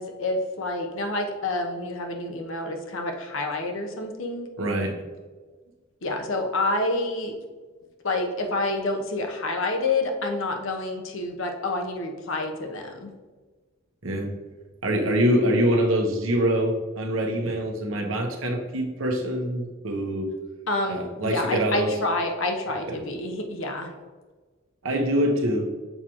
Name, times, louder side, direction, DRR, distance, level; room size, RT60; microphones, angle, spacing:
voice 1, 0.0-4.5 6.0-7.3 8.0-13.1 20.7-23.9, left 2 dB, 70° left, 3 dB, 0.9 m, -28 dB
voice 2, 4.6-5.0 14.0-14.3 14.8-20.3 20.9-21.9 22.9-23.0 24.8-25.7, equal, 70° right, 2 dB, 1.0 m, -24 dB
6.6 x 4.9 x 3.0 m, 1.4 s
head